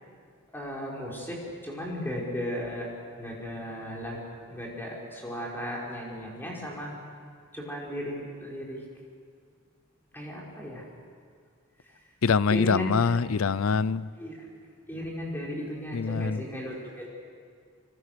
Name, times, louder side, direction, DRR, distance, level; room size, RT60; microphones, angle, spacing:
voice 1, 0.5-1.4 1.6-2.9 3.2-4.2 4.5-6.9 7.5-8.8 10.1-10.8 12.5-12.9 14.2-14.4 14.9-17.1, equal, 10° left, -3 dB, 5.5 m, -35 dB
voice 2, 12.2-14.1 15.9-16.4, left 5 dB, 70° left, 18 dB, 0.5 m, -24 dB
25.5 x 25.5 x 6.9 m, 2.1 s
head